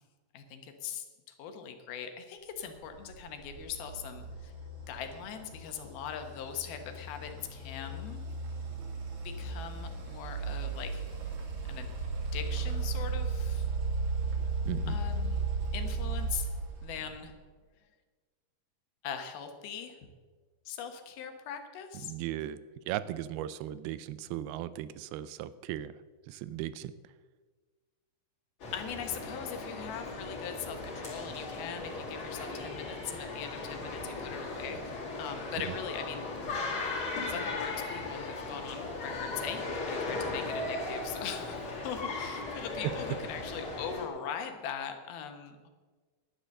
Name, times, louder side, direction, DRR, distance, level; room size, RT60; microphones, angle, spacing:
voice 1, 0.3-4.5 4.9-8.2 9.2-11.0 11.7-11.9 12.3-13.7 14.9-15.4 15.7-16.5 16.8-17.4 19.0-20.0 20.7-22.1 28.7-36.4 37.2-45.7, left 8 dB, 80° left, 6 dB, 3.0 m, -41 dB
sound 1, 2.9-17.3, right 3 dB, 55° right, 3.2 m, -35 dB
voice 2, 14.7-15.0 22.0-22.6 22.9-25.9 26.3-26.9, right 13 dB, 85° right, 15 dB, 2.5 m, -37 dB
sound 2, 28.6-44.1, left 3 dB, 35° left, 3.1 m, -37 dB
11.0 x 10.5 x 6.6 m, 1.4 s
omnidirectional pair, 4.4 m